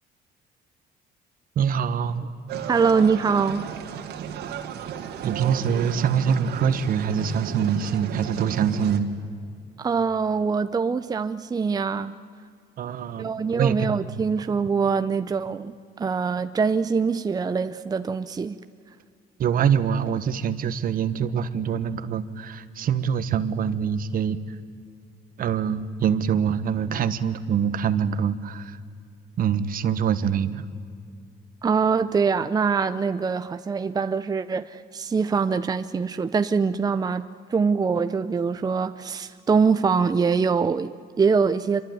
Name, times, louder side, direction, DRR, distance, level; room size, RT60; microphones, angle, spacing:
voice 1, 1.5-2.3 5.2-9.1 12.8-14.0 19.4-24.4 25.4-28.8 29.4-30.6, right 7 dB, 55° right, 12 dB, 1.4 m, -24 dB
sound 1, 2.5-9.0, right 8 dB, 75° right, 2.4 m, -34 dB
voice 2, 2.7-3.7 9.8-12.1 13.2-18.6 31.6-41.8, right 5 dB, 20° right, 10 dB, 0.7 m, -24 dB
27.0 x 23.5 x 9.4 m, 2.3 s
cardioid pair, 110°, 17 cm